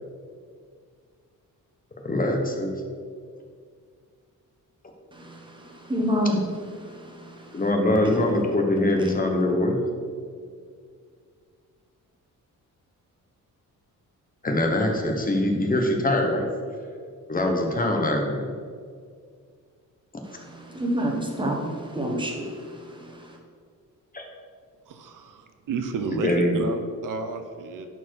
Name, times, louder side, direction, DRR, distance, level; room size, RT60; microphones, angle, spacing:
voice 1, 2.0-2.7 7.5-9.8 14.4-16.5 17.3-18.5 24.1-24.2 26.2-26.6, left 1 dB, 25° left, 2 dB, 1.1 m, -23 dB
voice 2, 5.1-7.6 8.0-8.2 8.9-9.1 20.2-23.4, equal, 15° right, 0 dB, 1.3 m, -29 dB
voice 3, 24.9-27.9, right 4 dB, 75° right, 7 dB, 0.8 m, -31 dB
10.5 x 4.6 x 4.7 m, 2.1 s
wide cardioid pair, 135°, 32 cm